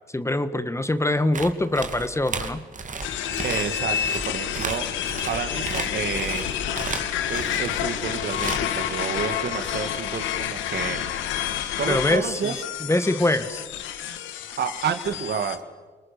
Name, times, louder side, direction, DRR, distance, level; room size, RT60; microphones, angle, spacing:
voice 1, 0.1-2.6 11.9-12.5 12.8-13.6, left 1 dB, 15° left, 12 dB, 1.5 m, -24 dB
sound 1, 1.3-7.8 8.3-8.8 9.8-10.0, right 4 dB, 40° right, 2.6 m, -34 dB
sound 2, 3.0-15.6, left 10 dB, 85° left, 1.6 m, -29 dB
voice 2, 3.4-4.0 4.2-4.9 5.2-6.5 7.3-11.1 11.8-12.5 14.6-15.6, right 7 dB, 60° right, 8 dB, 2.0 m, -30 dB
29.0 x 19.5 x 6.9 m, 1.4 s
supercardioid pair, 55°, 19 cm